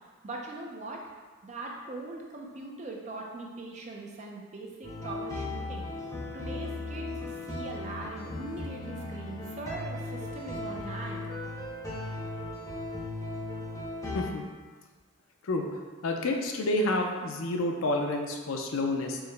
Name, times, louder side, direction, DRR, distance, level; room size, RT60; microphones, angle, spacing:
voice 1, 0.2-1.0 1.4-5.9 6.3-11.3, right 2 dB, 30° right, -1 dB, 0.4 m, -41 dB
sound 1, 4.8-14.3, left 2 dB, 15° left, 0.6 m, -37 dB
voice 2, 16.0-19.2, left 2 dB, 60° left, 2 dB, 0.4 m, -29 dB
4.6 x 2.1 x 3.2 m, 1.4 s
head